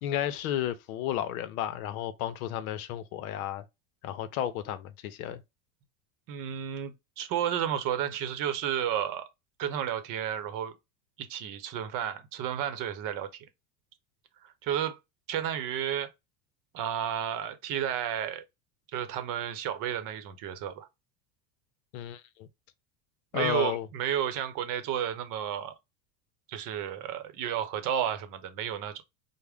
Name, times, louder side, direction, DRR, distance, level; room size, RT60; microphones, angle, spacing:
voice 1, 0.0-3.6 4.0-5.4 21.9-22.5 23.3-23.9, left 11 dB, 75° left, 0.7 m, -33 dB
voice 2, 6.3-9.3 9.6-10.7 11.2-13.4 14.4-15.0 15.3-16.1 16.7-18.4 18.9-20.9 23.3-25.7 26.5-28.9, right 9 dB, 50° right, 0.8 m, -32 dB
3.5 x 2.1 x 3.4 m
supercardioid pair, 120°, 43 cm